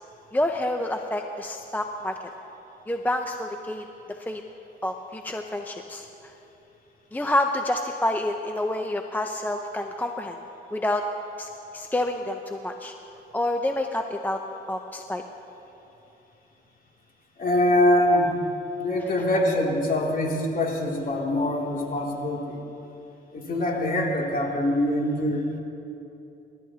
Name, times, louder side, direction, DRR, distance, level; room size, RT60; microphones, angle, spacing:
voice 1, 0.3-2.2 2.9-3.9 4.2-4.4 4.8-6.3 7.1-10.4 10.7-11.0 11.4-12.9 13.3-14.4 14.7-15.2 17.9-18.3, left 1 dB, 10° left, 4 dB, 0.6 m, -28 dB
voice 2, 17.4-18.3 18.8-22.6 23.3-25.6, left 1 dB, 45° left, -1 dB, 2.7 m, -24 dB
26.0 x 12.5 x 2.8 m, 2.9 s
cardioid pair, 90°, 20 cm